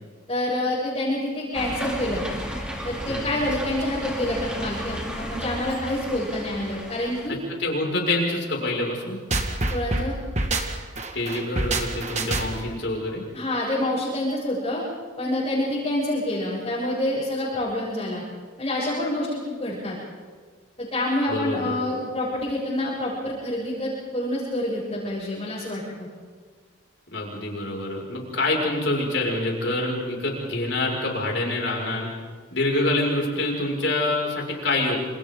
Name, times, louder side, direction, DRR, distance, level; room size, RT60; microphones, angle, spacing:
voice 1, 0.3-2.2 2.8-7.4 9.7-10.2 13.3-14.8 15.2-18.2 18.6-20.0 20.8-26.1, left 1 dB, 30° left, -9 dB, 7.8 m, -27 dB
sound 1, 1.5-7.3, equal, 5° right, 3.3 m, -33 dB
voice 2, 7.6-9.2 11.1-13.2 21.3-21.7 27.1-32.1 32.5-35.0, left 2 dB, 65° left, -2 dB, 6.2 m, -26 dB
sound 2, 9.3-12.8, right 2 dB, 35° right, 1.8 m, -26 dB
28.5 x 28.0 x 4.0 m, 1.5 s
head